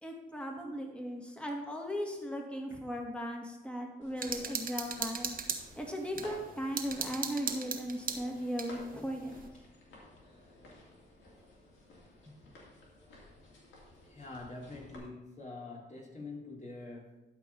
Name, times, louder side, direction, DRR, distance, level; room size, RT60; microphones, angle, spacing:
voice 1, 0.0-5.4 5.8-9.5 12.3-12.4, equal, 5° left, 1 dB, 2.2 m, -37 dB
sound 1, 4.0-15.0, left 2 dB, 85° left, 2.6 m, -55 dB
sound 2, 4.2-6.3 6.8-8.7, right 5 dB, 50° right, 1.2 m, -37 dB
voice 2, 14.0-17.2, left 3 dB, 40° left, -2 dB, 3.1 m, -45 dB
12.0 x 4.7 x 5.4 m, 1.0 s
cardioid pair, 65°, 19 cm